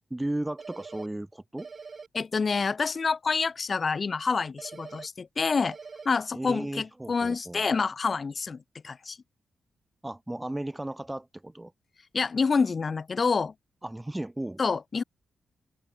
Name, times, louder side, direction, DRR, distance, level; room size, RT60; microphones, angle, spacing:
voice 1, 0.0-1.7 6.3-7.6 10.0-11.7 13.8-14.6, right 1 dB, 10° right, 2.8 m, -35 dB
sound 1, 0.6-1.1 1.6-2.1 4.6-5.1 5.6-6.1, right 5 dB, 45° right, 3.1 m, -43 dB
voice 2, 2.1-5.8 6.0-9.2 12.1-13.5 14.6-15.0, left 5 dB, 45° left, 5.1 m, -27 dB
cardioid pair, 80°, 0 cm